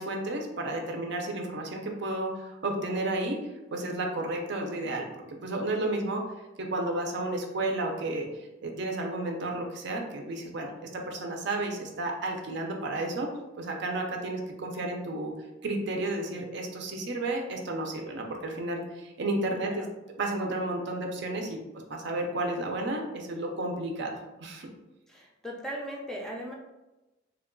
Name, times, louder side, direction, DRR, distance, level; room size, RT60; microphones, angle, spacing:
voice 1, 0.0-6.2 6.6-15.3 15.6-19.9 20.2-21.6 21.9-24.7, right 2 dB, 60° right, 2 dB, 0.6 m, -32 dB
voice 2, 25.1-26.5, equal, 5° left, -2 dB, 0.5 m, -38 dB
3.4 x 2.3 x 3.7 m, 1.0 s
head